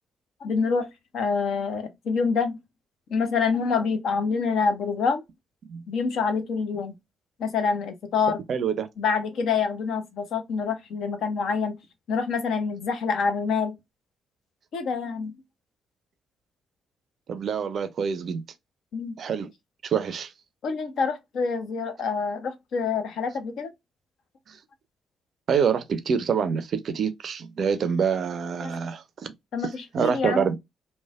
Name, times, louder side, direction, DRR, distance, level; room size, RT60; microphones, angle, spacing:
voice 1, 0.4-0.9 1.1-2.6 3.1-5.2 5.9-6.9 7.4-8.4 9.0-11.7 12.1-13.8 14.7-15.3 18.9-19.2 20.6-23.7 28.6-28.8 29.5-30.4, left 5 dB, 55° left, 0.6 m, -26 dB
voice 2, 8.5-8.9 17.3-18.4 19.2-19.5 19.8-20.3 24.5-24.6 25.5-29.3 29.9-30.6, right 6 dB, 50° right, 0.4 m, -26 dB
3.1 x 2.1 x 2.3 m
figure-of-eight pair, 40°, 0 cm